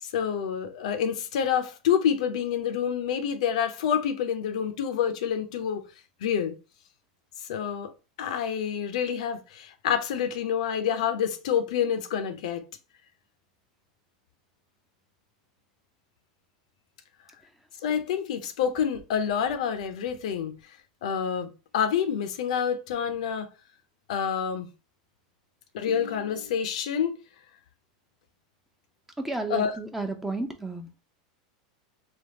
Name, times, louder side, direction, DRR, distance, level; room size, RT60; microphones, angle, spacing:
voice 1, 0.0-5.9 6.2-6.6 7.4-7.9 8.2-12.6 17.8-20.6 21.0-23.5 24.1-24.7 25.7-27.2 29.5-29.8, left 8 dB, 75° left, 0.5 m, -27 dB
voice 2, 29.2-30.9, right 2 dB, 5° right, 0.5 m, -32 dB
3.4 x 2.2 x 2.7 m
supercardioid pair, 120°, 4 cm